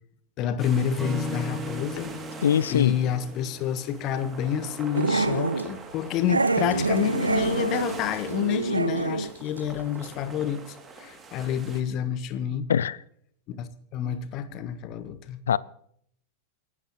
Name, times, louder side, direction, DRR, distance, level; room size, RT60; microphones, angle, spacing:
voice 1, 0.4-2.2 2.7-12.7 13.5-15.4, left 9 dB, 40° left, 1.2 m, -29 dB
sound 1, 0.6-11.8, right 4 dB, 20° right, 2.5 m, -43 dB
Acoustic guitar / Strum, 1.0-4.3, left 1 dB, 10° left, 4.6 m, -37 dB
voice 2, 2.4-3.0 12.7-13.0 15.5-15.6, left 8 dB, 65° left, 0.4 m, -22 dB
Growling, 5.0-5.7 6.3-9.3 9.6-9.7 10.0-10.1, right 3 dB, 80° right, 0.9 m, -26 dB
27.0 x 12.5 x 3.0 m
figure-of-eight pair, 90°, 0 cm